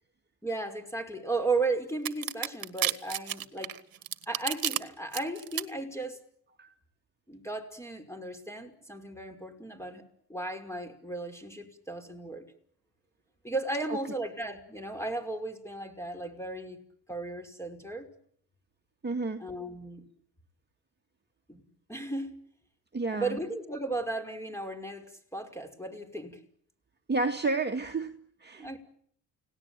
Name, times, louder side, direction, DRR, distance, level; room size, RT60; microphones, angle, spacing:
voice 1, 0.4-3.8 4.3-6.2 7.3-10.0 10.3-12.5 13.4-16.8 17.1-18.1 19.4-20.1 21.5-22.4 23.1-26.4 28.6-28.8, right 2 dB, 5° left, 5.7 m, -35 dB
sound 1, 2.1-4.8 5.1-5.6, right 11 dB, 50° right, 1.8 m, -30 dB
voice 2, 19.0-19.4 22.9-23.4 27.1-28.8, right 3 dB, 25° right, 2.2 m, -31 dB
30.0 x 18.5 x 9.1 m
supercardioid pair, 75°, 44 cm